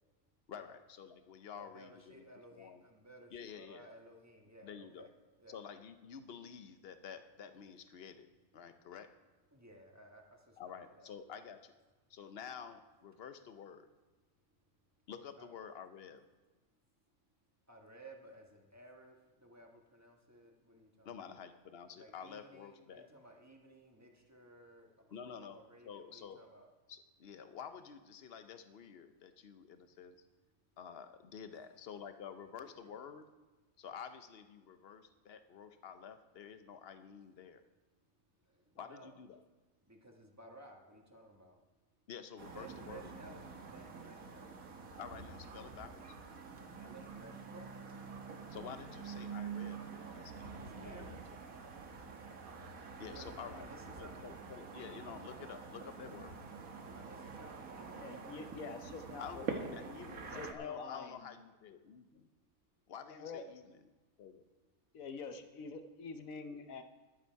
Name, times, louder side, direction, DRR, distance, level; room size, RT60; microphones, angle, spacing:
voice 1, 0.5-2.2 2.5-2.8 3.3-3.9 4.6-5.1 5.5-8.3 8.5-9.1 10.6-11.7 12.1-13.9 15.1-16.2 21.0-23.1 25.1-26.4 26.9-30.2 30.8-33.3 33.8-37.6 38.8-39.4 42.1-43.1 45.0-46.1 48.5-51.5 53.0-56.4 59.2-62.3 62.9-63.6 64.2-64.4, left 7 dB, 50° left, 9 dB, 0.9 m, -50 dB
voice 2, 1.5-5.1 5.4-5.6 9.5-11.1 15.4-15.5 17.7-21.1 22.0-24.9 25.2-26.7 38.4-39.1 39.9-41.6 42.5-44.6 46.7-47.7 50.5-51.3 53.0-54.3 56.8-58.7, right 1 dB, 10° right, 1 dB, 1.4 m, -57 dB
sound 1, 42.4-60.5, right 5 dB, 80° right, 1.6 m, -47 dB
voice 3, 57.9-59.8 60.2-61.4 63.1-63.4 64.9-66.8, left 4 dB, 80° left, 8 dB, 1.4 m, -46 dB
13.5 x 11.5 x 4.6 m, 1.2 s
omnidirectional pair, 1.4 m